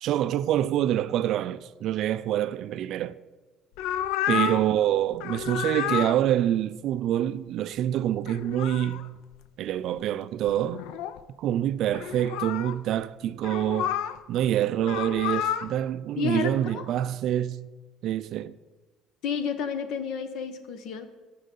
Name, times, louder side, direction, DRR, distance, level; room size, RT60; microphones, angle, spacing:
voice 1, 0.0-3.2 4.3-9.2 9.6-10.8 11.4-14.0 14.3-17.7 18.0-18.5, right 11 dB, 55° right, 0.3 m, -26 dB
sound 1, 3.8-4.7 5.1-6.2 8.2-9.1 10.0-10.1 10.5-11.2 11.9-12.8 13.4-14.2 14.8-15.7, left 10 dB, 90° left, 0.4 m, -30 dB
voice 2, 16.2-16.8 19.2-21.1, left 6 dB, 60° left, 1.0 m, -31 dB
18.5 x 6.4 x 3.8 m
cardioid pair, 165°, 0 cm